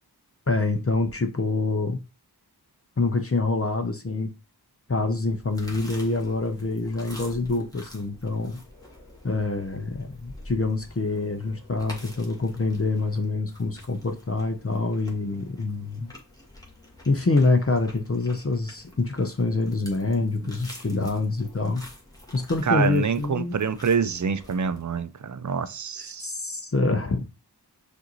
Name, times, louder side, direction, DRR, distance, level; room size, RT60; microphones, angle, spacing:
voice 1, 0.5-2.0 3.0-4.3 4.9-8.6 9.2-16.1 17.1-21.8 22.3-23.6 26.2-27.2, left 3 dB, 35° left, 0.6 m, -26 dB
sound 1, 5.2-24.8, left 1 dB, 10° left, 1.3 m, -47 dB
voice 2, 20.1-20.5 22.6-26.3, right 6 dB, 45° right, 0.5 m, -27 dB
6.3 x 2.6 x 2.9 m
wide cardioid pair, 55°, 40 cm